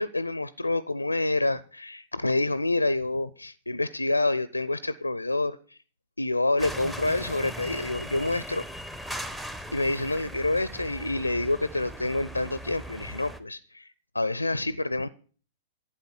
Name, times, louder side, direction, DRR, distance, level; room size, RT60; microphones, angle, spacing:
voice 1, 0.0-5.8 6.2-8.6 9.7-15.1, left 2 dB, 85° left, 19 dB, 0.5 m, -28 dB
sound 1, 6.6-13.4, equal, 5° right, 1.1 m, -39 dB
11.5 x 8.4 x 7.0 m, 0.41 s
figure-of-eight pair, 105°, 0 cm